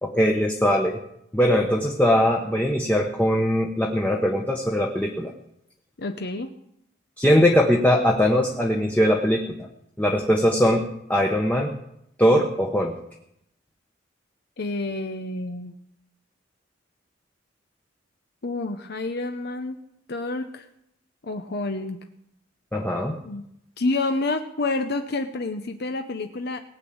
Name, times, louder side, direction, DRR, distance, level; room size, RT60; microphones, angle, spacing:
voice 1, 0.0-1.0 1.3-5.3 7.2-9.7 10.0-11.8 12.2-12.9 22.7-23.2, equal, 10° left, 0 dB, 1.1 m, -21 dB
voice 2, 6.0-6.5 14.6-15.7 18.4-19.8 20.1-20.6 21.2-22.0 23.2-23.4 23.8-26.6, left 2 dB, 55° left, 7 dB, 0.8 m, -28 dB
18.5 x 6.3 x 8.6 m, 0.78 s
head